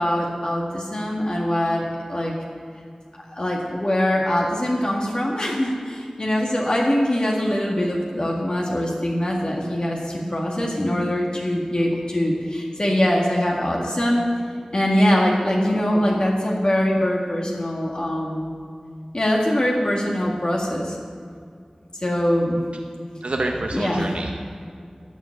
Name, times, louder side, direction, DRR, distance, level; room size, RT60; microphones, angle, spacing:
voice 1, 0.0-2.3 3.3-14.2 14.7-18.5 19.1-21.0 22.0-22.6 23.7-24.1, left 1 dB, 45° left, -2 dB, 1.8 m, -22 dB
voice 2, 23.2-24.3, right 2 dB, 80° right, 2 dB, 0.8 m, -27 dB
12.5 x 4.9 x 8.4 m, 2.2 s
wide cardioid pair, 65°, 2 cm